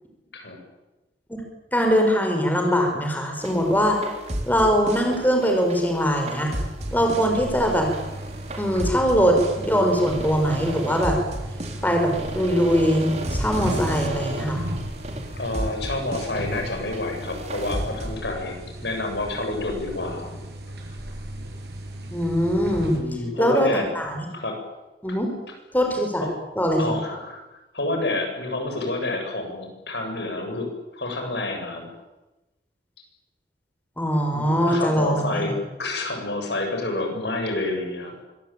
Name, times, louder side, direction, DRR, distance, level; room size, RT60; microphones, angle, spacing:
voice 1, 1.7-4.0 4.5-6.5 6.9-7.9 8.6-11.2 11.8-14.6 22.1-23.0 23.4-23.7 23.9-24.2 25.0-25.3 25.7-26.3 26.6-27.0 34.0-35.4, equal, 10° left, 2 dB, 5.4 m, -21 dB
sound 1, 3.4-18.1, right 1 dB, 40° right, 3.9 m, -33 dB
sound 2, 6.8-23.0, right 1 dB, 65° right, 7.5 m, -36 dB
voice 2, 15.4-20.3 22.8-23.8 24.3-24.6 25.1-25.2 26.2-26.3 26.8-31.9 34.3-38.1, left 2 dB, 75° left, 4 dB, 7.7 m, -29 dB
25.0 x 22.0 x 9.2 m, 1.0 s
head